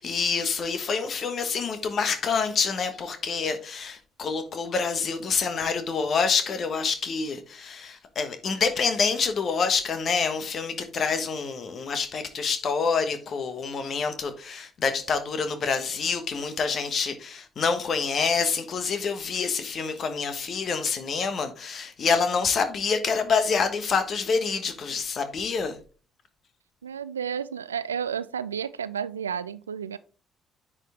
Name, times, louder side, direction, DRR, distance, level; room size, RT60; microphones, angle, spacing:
voice 1, 0.0-25.8, left 5 dB, 45° left, 1.4 m, -27 dB
voice 2, 26.8-30.0, right 7 dB, 80° right, 0.3 m, -31 dB
9.7 x 5.0 x 3.6 m
figure-of-eight pair, 45°, 0 cm